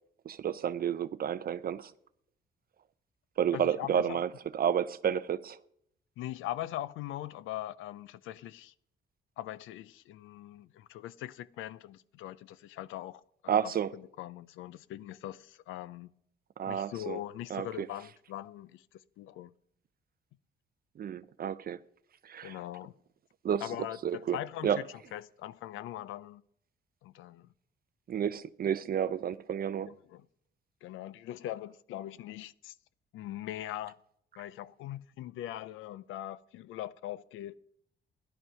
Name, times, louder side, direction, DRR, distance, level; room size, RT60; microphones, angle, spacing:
voice 1, 0.3-1.9 3.4-5.6 13.5-13.9 16.6-17.2 17.5-17.9 21.0-21.8 22.2-22.6 23.4-23.7 24.0-24.4 24.6-24.8 28.1-29.9, right 8 dB, 50° right, 0.5 m, -31 dB
voice 2, 3.5-4.2 6.2-8.7 9.4-13.6 13.9-16.1 16.7-18.8 19.2-19.5 22.4-22.9 23.6-26.4 27.0-27.5 29.9-30.3 30.8-32.7 33.1-33.9 34.4-37.5, left 13 dB, 90° left, 0.6 m, -41 dB
14.0 x 11.0 x 5.7 m
cardioid pair, 90°, 20 cm